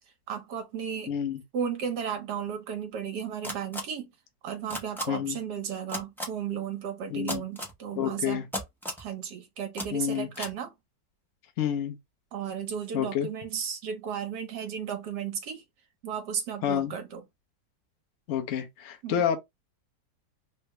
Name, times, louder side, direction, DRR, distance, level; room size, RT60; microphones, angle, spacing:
voice 1, 0.3-1.1 1.5-4.1 4.4-8.4 9.0-10.7 12.3-15.6 16.0-17.2 19.0-19.2, right 7 dB, 70° right, 1.4 m, -34 dB
voice 2, 1.1-1.4 5.1-5.4 7.1-7.4 8.0-8.5 9.9-10.5 11.6-12.0 12.9-13.3 16.6-16.9 18.3-19.4, left 9 dB, 65° left, 0.7 m, -29 dB
sound 1, 3.4-3.8 4.7-5.0 5.9-6.2 7.3-7.7 8.5-9.0 9.7-9.9 10.3-10.5, equal, 5° left, 0.4 m, -33 dB
3.4 x 2.1 x 2.9 m
omnidirectional pair, 2.0 m